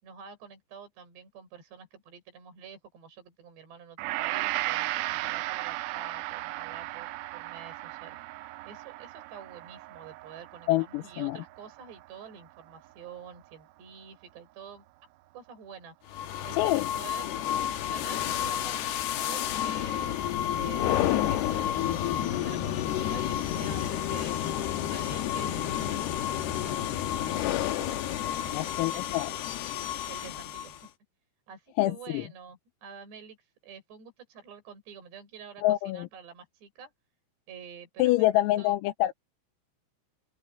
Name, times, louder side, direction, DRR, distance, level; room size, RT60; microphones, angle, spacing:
voice 1, 0.0-8.2 8.6-14.8 15.3-15.9 16.4-17.2 17.9-20.2 20.6-26.9 27.6-28.0 28.3-29.5 30.1-30.9 31.5-36.9 37.5-38.8, right 7 dB, 55° right, 8.3 m, -48 dB
Gong, 4.0-12.4 12.8-12.9, right 18 dB, 90° right, 3.4 m, -36 dB
voice 2, 10.7-11.4 16.5-16.9 28.5-29.3 31.8-32.2 35.6-36.1 38.0-39.1, left 16 dB, 85° left, 3.6 m, -26 dB
sound 1, 16.1-30.9, left 11 dB, 70° left, 2.6 m, -30 dB
open air
omnidirectional pair, 5.9 m